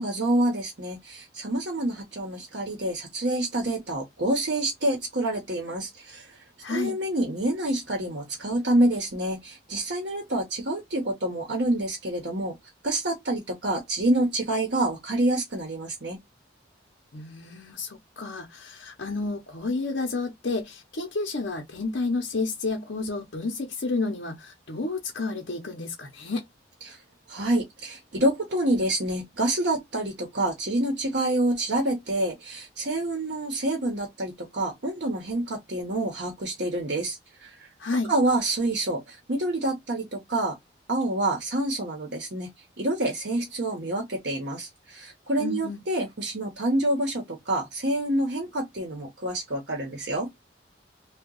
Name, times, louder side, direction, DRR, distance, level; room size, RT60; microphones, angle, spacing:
voice 1, 0.0-6.4 6.7-12.6 12.8-16.2 26.8-27.0 27.3-37.7 38.0-40.6 40.9-42.5 42.8-50.3, right 1 dB, 60° right, 0.8 m, -27 dB
voice 2, 6.6-6.9 17.1-26.4 37.8-38.1 45.4-45.8, left 3 dB, 65° left, 0.7 m, -31 dB
2.8 x 2.2 x 3.7 m
head